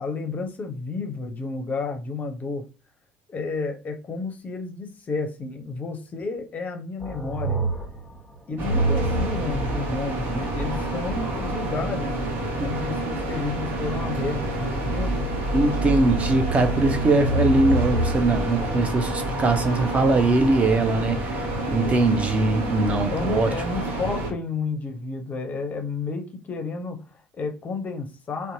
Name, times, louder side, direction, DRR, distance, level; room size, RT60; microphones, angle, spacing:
voice 1, 0.0-2.7 3.3-7.6 8.5-15.2 21.7-22.1 23.1-28.5, left 4 dB, 30° left, 0.6 m, -31 dB
sound 1, 7.0-11.6 14.6-20.7 21.7-22.3, right 1 dB, 5° left, 1.0 m, -29 dB
sound 2, 8.6-24.3, right 2 dB, 45° right, 0.9 m, -29 dB
voice 2, 15.5-23.5, right 2 dB, 25° right, 0.5 m, -21 dB
2.6 x 2.1 x 2.7 m
figure-of-eight pair, 60°, 5 cm